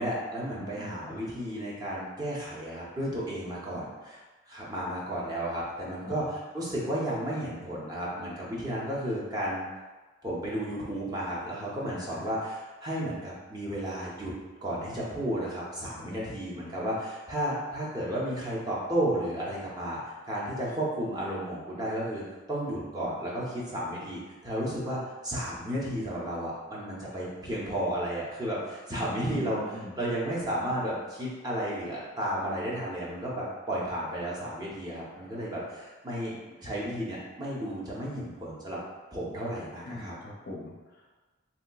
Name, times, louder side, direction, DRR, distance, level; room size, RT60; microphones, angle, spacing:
voice 1, 0.0-4.2 4.5-9.6 10.2-14.3 14.6-22.2 22.5-29.6 30.0-38.8 39.1-40.1, right 1 dB, 20° right, -6 dB, 0.5 m, -33 dB
voice 2, 0.5-1.3 5.8-6.3 11.8-12.3 16.0-16.2 29.3-30.0 39.8-41.1, left 1 dB, 45° left, -2 dB, 0.4 m, -42 dB
3.2 x 2.8 x 2.2 m, 1.2 s
head